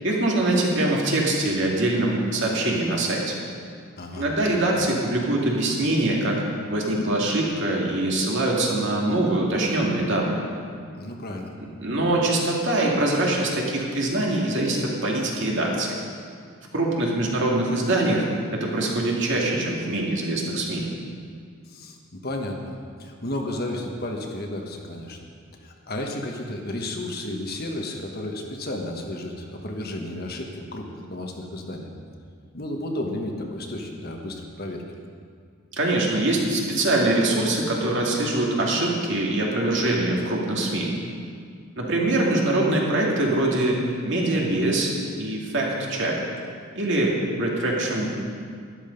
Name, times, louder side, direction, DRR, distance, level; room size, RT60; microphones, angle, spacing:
voice 1, 0.0-3.3 4.1-6.4 6.7-10.4 11.6-15.9 16.7-18.3 18.5-20.8 35.8-40.9 41.8-43.8 44.1-44.9 45.2-46.2 46.8-48.1, right 2 dB, 55° right, -2 dB, 2.3 m, -23 dB
voice 2, 11.0-11.5 21.7-25.2 25.6-31.9 32.5-34.8, left 1 dB, 45° left, 2 dB, 1.4 m, -32 dB
12.5 x 11.5 x 5.2 m, 2.2 s
head